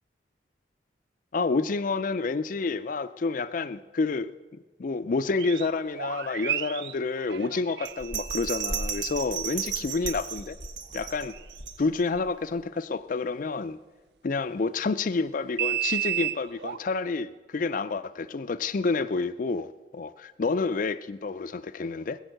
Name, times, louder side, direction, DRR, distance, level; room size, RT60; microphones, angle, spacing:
voice 1, 1.3-10.6 10.9-11.3 11.8-13.8 14.2-22.2, left 4 dB, 45° left, 13 dB, 0.4 m, -29 dB
sound 1, 5.4-9.2 10.0-10.2 11.3-11.4 15.5-16.8, right 12 dB, 60° right, 0.4 m, -32 dB
Bell, 7.9-12.2 12.6-12.7, right 6 dB, 85° right, 1.4 m, -34 dB
20.5 x 7.1 x 7.8 m, 1.2 s
head